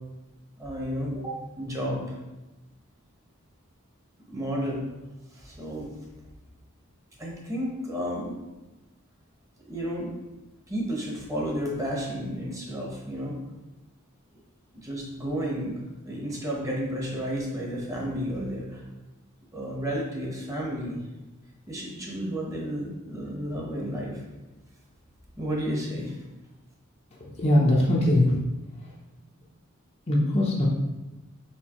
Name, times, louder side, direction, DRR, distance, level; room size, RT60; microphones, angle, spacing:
voice 1, 0.6-2.2 4.3-4.8 5.3-5.9 7.2-8.4 9.6-10.1 10.7-13.4 14.8-18.8 19.5-21.0 21.7-24.2 25.4-26.2, equal, 15° right, -3 dB, 0.9 m, -32 dB
voice 2, 27.1-28.4 28.8-28.9 30.1-30.7, left 1 dB, 30° left, -3 dB, 0.6 m, -22 dB
4.4 x 3.9 x 2.9 m, 1.1 s
head